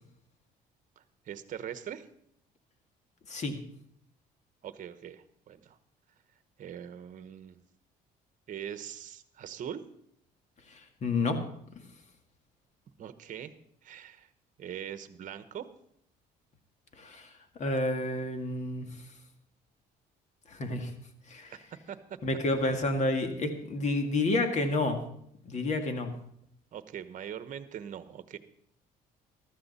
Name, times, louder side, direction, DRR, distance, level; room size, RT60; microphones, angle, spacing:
voice 1, 1.0-2.1 4.6-5.8 6.6-7.6 8.5-9.8 13.0-13.5 13.8-14.3 14.6-15.7 21.9-22.2 26.7-28.4, right 9 dB, 50° right, 12 dB, 1.1 m, -42 dB
voice 2, 3.3-3.6 10.7-11.4 17.0-17.3 17.6-18.9 20.5-20.9 21.3-21.5 22.2-25.0 25.4-26.1, left 2 dB, 45° left, 6 dB, 2.1 m, -30 dB
14.5 x 13.5 x 4.2 m, 0.71 s
cardioid pair, 110°, 17 cm